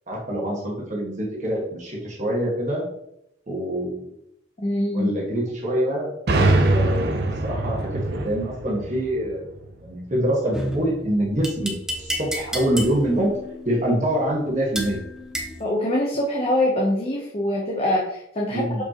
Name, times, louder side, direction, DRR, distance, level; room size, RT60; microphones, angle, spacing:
voice 1, 0.1-2.9 3.5-4.1 4.9-6.1 6.5-9.4 9.8-13.4 13.6-15.0 18.5-18.8, right 1 dB, 40° right, -4 dB, 1.6 m, -25 dB
voice 2, 4.6-5.2 15.6-18.8, left 1 dB, 30° left, -2 dB, 0.9 m, -24 dB
sound 1, 6.3-9.9, right 2 dB, 60° right, 0.7 m, -23 dB
sound 2, 10.5-15.7, equal, 5° right, 0.7 m, -32 dB
6.7 x 5.2 x 3.0 m, 0.76 s
head